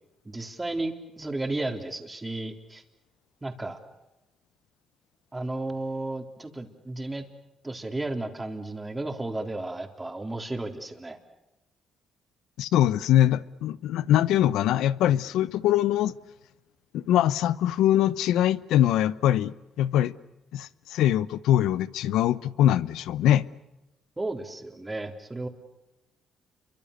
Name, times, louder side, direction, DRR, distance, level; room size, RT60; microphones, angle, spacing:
voice 1, 0.2-2.8 3.4-3.8 5.3-7.3 7.6-11.2 24.2-25.5, right 2 dB, 15° right, 3.7 m, -33 dB
voice 2, 12.6-16.2 16.9-20.1 20.5-23.5, left 12 dB, 90° left, 0.8 m, -23 dB
29.5 x 24.0 x 6.8 m
cardioid pair, 90°, 0 cm